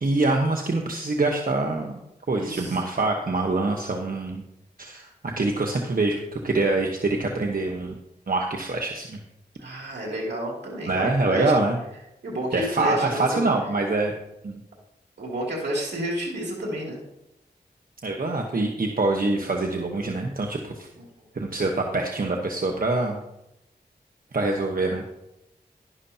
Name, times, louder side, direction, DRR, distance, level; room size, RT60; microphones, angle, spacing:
voice 1, 0.0-1.9 2.3-4.4 4.8-7.9 8.3-9.2 10.9-11.8 12.5-14.1 14.4-14.6 18.0-20.9 21.3-23.2 24.3-25.0, right 2 dB, 55° right, 2 dB, 1.2 m, -25 dB
voice 2, 2.4-2.8 9.6-11.5 12.2-13.4 15.2-17.0 21.0-21.1, right 1 dB, 85° right, -2 dB, 2.7 m, -30 dB
11.5 x 11.0 x 2.8 m, 0.88 s
cardioid pair, 50°, 17 cm